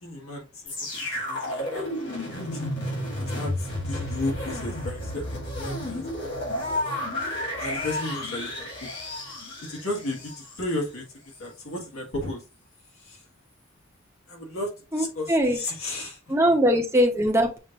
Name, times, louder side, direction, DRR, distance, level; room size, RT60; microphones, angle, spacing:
voice 1, 0.0-1.9 2.5-2.7 3.2-6.3 7.6-8.9 9.7-10.3 10.6-11.0 11.4-12.4 13.0-13.2 14.3-16.2 16.5-16.6, left 2 dB, 85° left, -1 dB, 1.8 m, -34 dB
sound 1, 0.7-10.7 11.3-11.4, left 1 dB, 55° left, 1.9 m, -32 dB
voice 2, 14.9-15.6 16.3-17.6, equal, 15° right, 2 dB, 0.8 m, -21 dB
6.7 x 2.6 x 2.9 m, 0.32 s
head